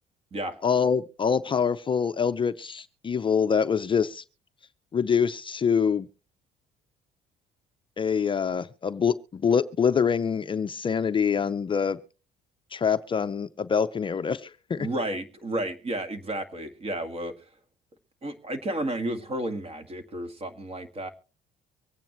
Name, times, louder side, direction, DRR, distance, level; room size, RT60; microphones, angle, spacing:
voice 1, 0.6-4.2 4.9-6.1 8.0-12.0 12.7-14.9, left 6 dB, 30° left, 10 dB, 0.5 m, -25 dB
voice 2, 14.8-17.3 18.2-21.1, right 1 dB, 35° right, 8 dB, 1.9 m, -32 dB
24.5 x 9.1 x 3.0 m, 0.35 s
cardioid pair, 110°, 17 cm